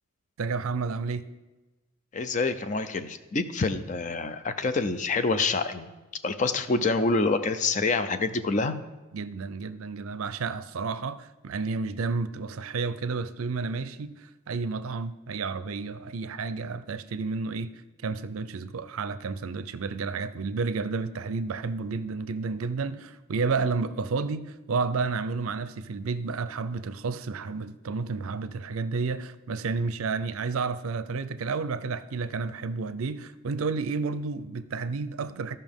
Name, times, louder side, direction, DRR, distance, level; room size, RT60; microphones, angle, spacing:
voice 1, 0.4-1.3 9.1-17.7 18.0-35.6, right 4 dB, 80° right, 0.5 m, -31 dB
voice 2, 2.1-5.9 6.2-8.8, left 3 dB, 35° left, 0.5 m, -26 dB
15.0 x 5.5 x 3.6 m
head